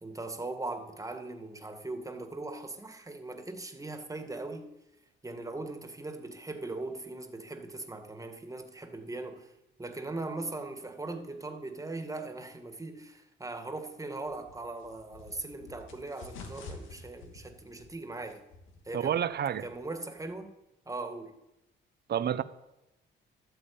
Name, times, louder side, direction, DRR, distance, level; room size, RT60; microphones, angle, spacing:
voice 1, 0.0-4.7 5.2-9.5 9.8-18.4 18.8-19.2 19.6-20.5 20.9-21.4, right 2 dB, 15° right, 2.1 m, -39 dB
sound 1, 14.3-20.4, left 4 dB, 80° left, 2.6 m, -50 dB
voice 2, 18.9-19.7 22.1-22.4, right 9 dB, 55° right, 0.9 m, -29 dB
12.0 x 9.0 x 8.7 m
cardioid pair, 90°, 20 cm